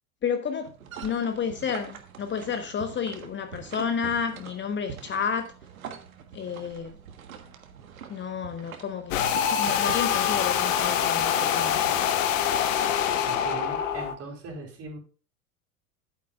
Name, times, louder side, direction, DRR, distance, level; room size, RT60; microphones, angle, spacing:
voice 1, 0.2-0.7 1.0-5.5 6.3-7.0 8.1-9.2 9.4-11.8, left 6 dB, 25° left, 1.2 m, -31 dB
sound 1, 0.7-12.3, right 7 dB, 70° right, 1.6 m, -44 dB
sound 2, 9.1-14.1, left 9 dB, 60° left, 1.4 m, -25 dB
voice 2, 13.3-15.0, right 4 dB, 35° right, 4.0 m, -38 dB
11.5 x 9.2 x 2.4 m
figure-of-eight pair, 75°, 43 cm